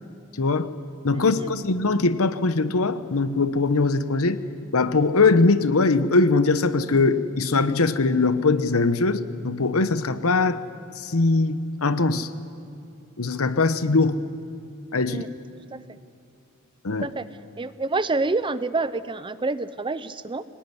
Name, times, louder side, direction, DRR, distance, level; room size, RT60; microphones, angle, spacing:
voice 1, 0.4-0.7 1.0-4.4 4.7-10.6 11.0-12.3 13.2-14.2 14.9-15.2 16.8-17.1, left 3 dB, 70° left, 12 dB, 1.0 m, -21 dB
voice 2, 1.1-1.5 15.1-15.3 15.7-15.8 16.9-17.3 17.6-20.4, right 3 dB, 20° right, 14 dB, 0.6 m, -28 dB
23.0 x 19.0 x 9.8 m, 2.5 s
head